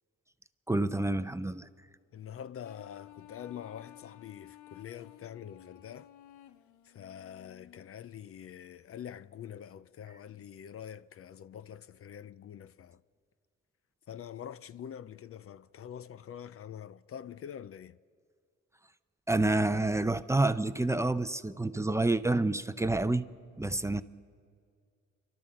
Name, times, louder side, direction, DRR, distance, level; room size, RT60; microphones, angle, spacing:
voice 1, 0.7-1.7 19.3-23.3 23.6-24.0, right 2 dB, 10° right, 0.6 m, -28 dB
voice 2, 2.1-6.1 6.8-13.0 14.1-18.0, left 9 dB, 50° left, 0.5 m, -45 dB
sound 1, 2.6-7.8, left 13 dB, 85° left, 0.8 m, -54 dB
27.5 x 12.0 x 7.7 m
cardioid pair, 90°, 30 cm